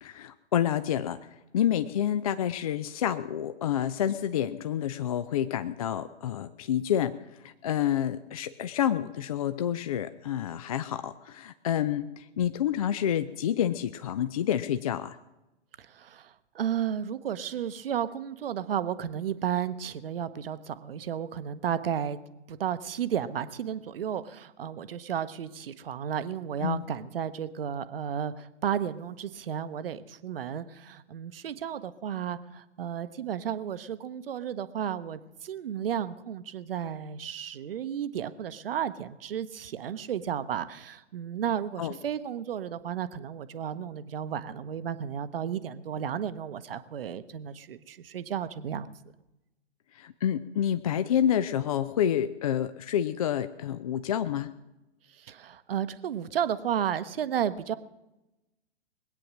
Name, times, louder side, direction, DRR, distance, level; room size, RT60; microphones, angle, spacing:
voice 1, 0.0-1.2 1.5-7.2 7.4-15.2 26.6-26.8 41.8-41.9 50.0-54.5, left 10 dB, 35° left, 11 dB, 0.4 m, -28 dB
voice 2, 15.8-22.2 22.5-48.9 55.1-57.7, right 9 dB, 55° right, 13 dB, 0.9 m, -33 dB
20.5 x 8.9 x 6.2 m, 0.99 s
figure-of-eight pair, 115°, 35 cm